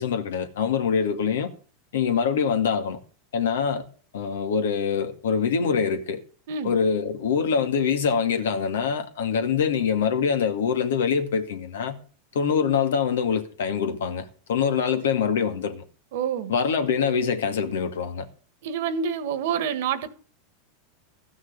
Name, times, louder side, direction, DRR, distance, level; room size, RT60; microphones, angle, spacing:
voice 1, 0.0-1.5 1.9-3.0 3.3-3.9 4.1-6.2 6.6-12.0 12.3-15.8 16.5-18.3, left 6 dB, 85° left, 2.1 m, -24 dB
voice 2, 16.1-16.5 18.6-20.1, right 7 dB, 70° right, 1.6 m, -27 dB
14.5 x 6.4 x 8.0 m
hypercardioid pair, 115°, 0 cm